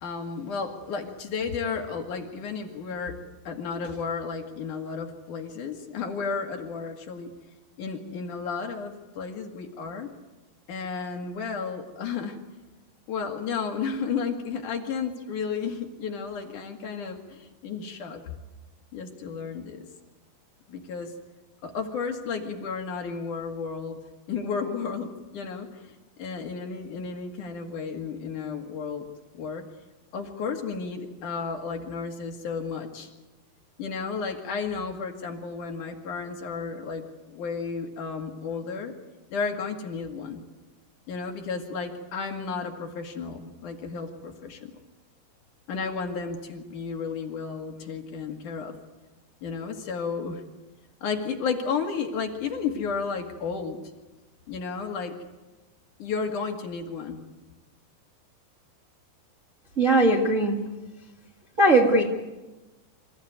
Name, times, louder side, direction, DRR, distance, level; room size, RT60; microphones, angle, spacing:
voice 1, 0.0-3.1 3.4-7.3 7.8-10.1 10.7-12.4 13.1-18.3 18.9-19.8 20.7-21.1 21.6-24.0 24.3-25.1 25.3-29.0 29.3-29.6 30.1-33.1 33.8-37.0 37.3-38.9 39.3-40.4 41.1-44.7 45.7-48.7 49.4-50.4 51.0-53.8 54.5-55.1 56.0-57.3, left 5 dB, 55° left, 3 dB, 3.2 m, -33 dB
voice 2, 59.8-60.7 61.6-62.0, right 2 dB, 85° right, 1 dB, 0.7 m, -19 dB
27.0 x 15.5 x 9.5 m, 1.1 s
omnidirectional pair, 4.9 m